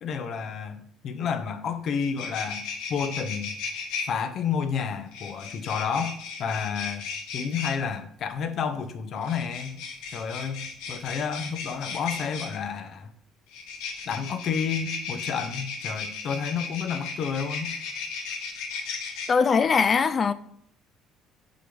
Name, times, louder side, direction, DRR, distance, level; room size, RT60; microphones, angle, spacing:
voice 1, 0.0-2.6 2.9-3.5 4.0-7.0 7.3-9.8 10.1-13.1 14.0-17.8, left 6 dB, 55° left, 0.7 m, -30 dB
sound 1, 1.7-1.8 2.0-4.1 5.1-7.8 9.2-12.6 13.5-19.3, left 5 dB, 80° left, 1.1 m, -35 dB
voice 2, 19.3-20.3, left 5 dB, 40° left, 0.3 m, -21 dB
6.0 x 4.9 x 3.4 m
supercardioid pair, 85°, 0 cm